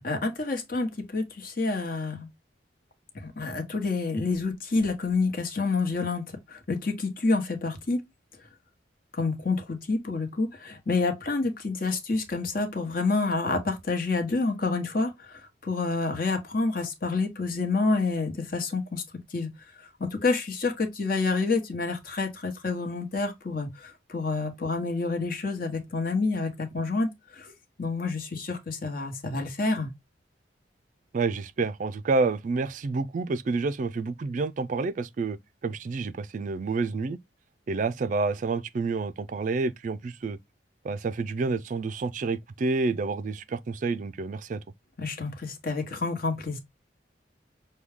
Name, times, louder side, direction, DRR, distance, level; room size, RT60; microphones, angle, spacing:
voice 1, 0.0-2.3 3.1-8.0 9.1-19.0 19.3-19.5 19.8-27.5 27.8-29.9 45.0-46.6, left 3 dB, 50° left, 1.1 m, -28 dB
voice 2, 31.1-35.4 35.6-37.2 37.7-40.4 40.8-44.6, right 3 dB, 45° right, 0.3 m, -29 dB
6.1 x 2.2 x 3.4 m
head